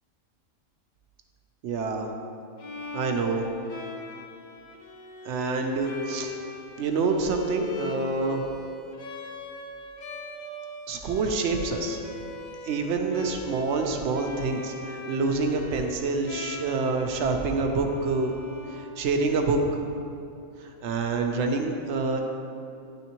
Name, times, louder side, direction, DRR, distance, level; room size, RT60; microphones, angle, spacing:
voice 1, 1.6-2.1 2.9-3.5 5.2-6.3 6.8-8.4 10.9-12.0 12.6-18.3 18.7-19.6 20.6-22.2, right 3 dB, 70° right, 3 dB, 0.8 m, -27 dB
Bowed string instrument, 2.6-19.5, left 3 dB, 75° left, 0.4 m, -41 dB
10.0 x 3.5 x 2.9 m, 2.6 s
omnidirectional pair, 1.3 m